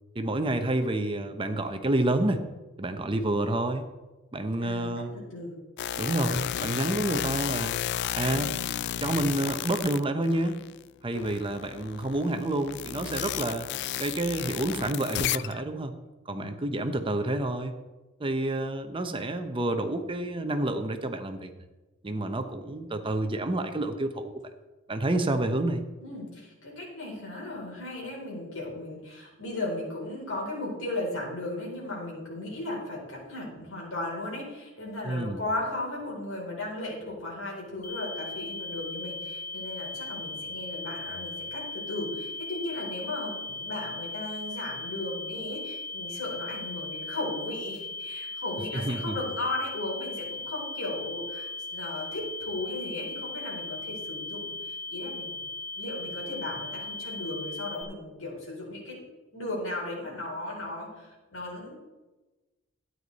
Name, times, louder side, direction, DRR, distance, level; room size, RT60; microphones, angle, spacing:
voice 1, 0.1-2.4 2.8-3.8 4.3-5.1 6.0-7.7 8.1-8.6 9.0-10.6 11.0-13.7 14.0-15.9 16.3-17.7 18.2-21.5 22.0-24.3 24.9-25.8 35.0-35.4 48.7-49.2, right 1 dB, 25° right, 8 dB, 0.8 m, -29 dB
voice 2, 4.6-5.5 16.3-17.0 26.0-55.4 55.8-59.0 59.3-61.7, left 2 dB, 80° left, -3 dB, 4.4 m, -36 dB
sound 1, 5.8-10.8 11.1-15.6, left 11 dB, 60° left, 0.3 m, -33 dB
sound 2, 37.8-57.8, left 3 dB, 40° left, 2.1 m, -38 dB
12.5 x 9.5 x 4.1 m, 1.1 s
head